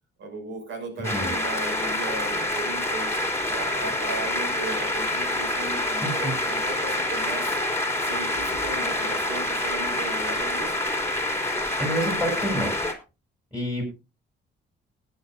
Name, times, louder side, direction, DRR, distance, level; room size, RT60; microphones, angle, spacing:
voice 1, 0.2-3.2 3.4-7.6 8.0-10.7, right 2 dB, 70° right, 5 dB, 6.2 m, -36 dB
sound 1, 1.0-12.9, left 1 dB, 15° left, 3.1 m, -27 dB
voice 2, 1.0-1.3 6.0-6.3 11.8-12.7 13.5-13.8, equal, 5° right, 0 dB, 7.3 m, -28 dB
19.0 x 9.7 x 2.6 m, 0.29 s
cardioid pair, 90°, 20 cm